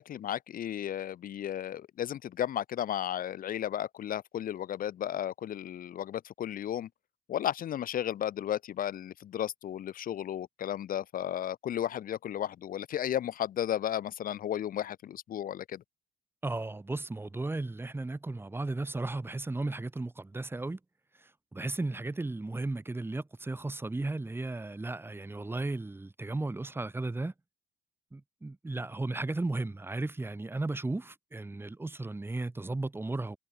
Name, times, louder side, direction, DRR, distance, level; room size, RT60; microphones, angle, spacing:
voice 1, 0.0-6.9 7.3-15.8, left 10 dB, 55° left, 2.8 m, -34 dB
voice 2, 16.4-20.8 21.5-27.3 28.1-33.4, right 2 dB, 15° right, 3.6 m, -35 dB
cardioid pair, 110°, 17 cm